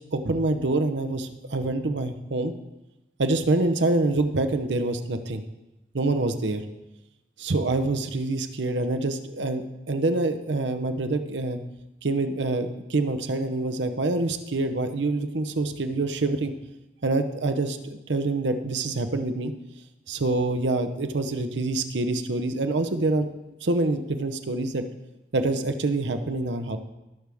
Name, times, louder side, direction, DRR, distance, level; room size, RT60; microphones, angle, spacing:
voice 1, 0.1-2.5 3.2-5.4 5.9-6.6 7.4-11.6 12.0-16.5 17.0-19.5 20.1-23.3 23.6-24.8 25.3-26.8, right 2 dB, 90° right, 8 dB, 0.8 m, -26 dB
18.5 x 6.3 x 3.5 m, 1.0 s
head